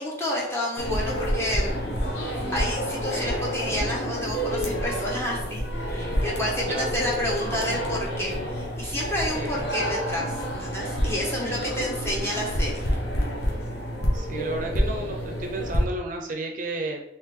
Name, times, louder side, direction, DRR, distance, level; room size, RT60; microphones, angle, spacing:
voice 1, 0.0-1.8 2.2-12.9, equal, 15° left, -3 dB, 0.8 m, -30 dB
sound 1, 0.8-15.8, equal, 65° left, 0.9 m, -28 dB
voice 2, 9.3-9.9 14.1-17.0, right 2 dB, 45° right, 2 dB, 0.5 m, -32 dB
3.7 x 2.9 x 3.0 m, 0.80 s
head